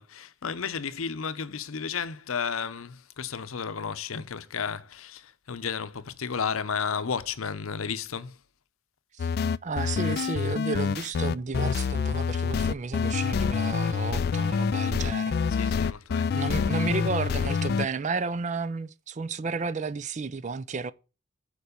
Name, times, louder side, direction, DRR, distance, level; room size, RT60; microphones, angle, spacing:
voice 1, 0.0-8.4 15.5-16.4, left 6 dB, 80° left, 0.7 m, -33 dB
sound 1, 9.2-17.9, left 6 dB, 50° left, 0.3 m, -27 dB
voice 2, 9.6-15.8 16.3-20.9, right 4 dB, 35° right, 0.4 m, -32 dB
7.0 x 4.6 x 6.6 m
head